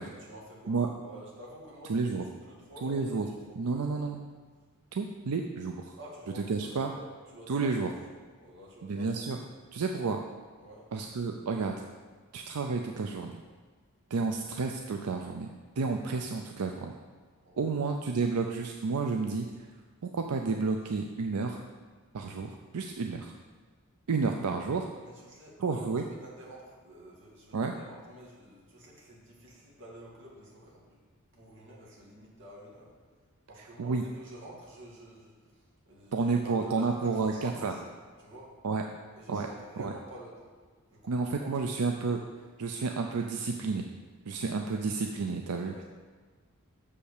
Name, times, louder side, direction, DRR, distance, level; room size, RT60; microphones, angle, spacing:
voice 1, 0.2-3.3 3.6-4.1 6.0-7.9 8.4-9.3 10.6-10.9 17.4-17.7 25.0-31.0 31.3-32.9 33.5-37.9 38.2-38.5 39.2-40.5 40.9-41.8 45.5-45.8, right 1 dB, 55° right, -5 dB, 2.3 m, -49 dB
voice 2, 1.9-2.2 2.8-3.3 3.6-4.2 4.9-6.0 6.4-6.9 7.5-7.9 8.8-9.4 9.7-10.2 10.9-11.7 12.3-13.3 14.1-15.5 15.8-16.9 17.6-19.5 20.0-21.6 22.1-23.3 24.1-24.9 25.6-26.0 27.5-27.7 33.8-34.0 36.1-37.8 38.6-38.8 39.3-39.5 39.8-39.9 41.1-42.2 42.6-43.9 44.3-45.8, right 4 dB, 85° right, 3 dB, 0.5 m, -31 dB
6.4 x 5.5 x 6.6 m, 1.5 s
head